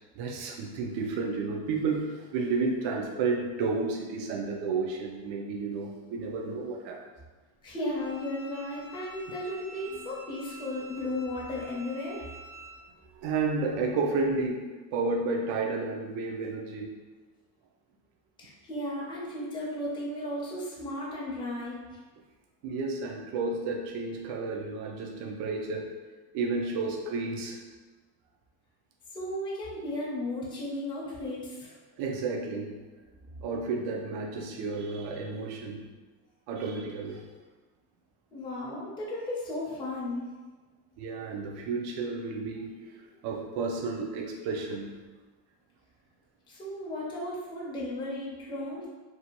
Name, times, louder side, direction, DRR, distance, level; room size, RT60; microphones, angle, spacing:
voice 1, 0.2-7.0 13.1-16.9 22.6-25.9 26.3-27.6 32.0-32.8 33.4-35.8 36.5-37.3 41.0-44.9, right 4 dB, 85° right, 0 dB, 0.5 m, -32 dB
voice 2, 7.6-12.3 18.4-21.8 29.1-31.7 38.3-40.3 46.5-48.9, left 1 dB, 15° left, -6 dB, 0.4 m, -35 dB
Bowed string instrument, 7.9-12.8, right 1 dB, 70° right, 1.2 m, -48 dB
2.7 x 2.2 x 2.8 m, 1.3 s
cardioid pair, 165°, 39 cm